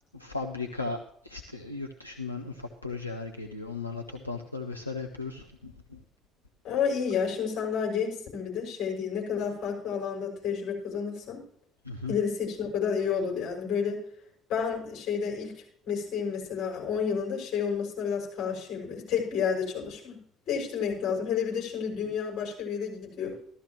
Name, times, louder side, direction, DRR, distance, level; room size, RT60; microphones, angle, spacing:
voice 1, 0.1-1.0 1.2-6.0 11.9-12.1, left 3 dB, 90° left, 3 dB, 0.6 m, -36 dB
voice 2, 6.6-11.4 12.1-14.0 14.5-15.6 15.8-20.2 20.5-23.4, left 6 dB, 50° left, -2 dB, 6.4 m, -30 dB
15.0 x 13.0 x 3.1 m, 0.65 s
figure-of-eight pair, 55°, 0 cm